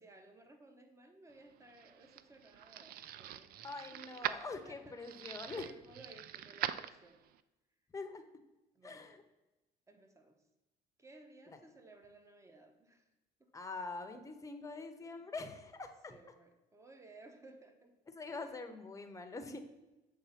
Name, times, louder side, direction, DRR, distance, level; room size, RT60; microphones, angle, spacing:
voice 1, 0.0-3.6 3.9-7.2 8.7-9.2 9.9-10.4 11.0-13.1 13.4-13.5 15.2-15.3 16.1-18.0 18.3-18.7, right 2 dB, 15° right, 6 dB, 0.9 m, -59 dB
sound 1, 1.4-7.4, right 11 dB, 65° right, 0.4 m, -43 dB
voice 2, 3.6-5.7 7.9-8.2 8.8-9.2 11.5-11.6 13.5-16.1 18.1-19.6, left 3 dB, 20° left, 7 dB, 0.8 m, -44 dB
7.0 x 3.3 x 5.8 m, 1.0 s
cardioid pair, 110°, 17 cm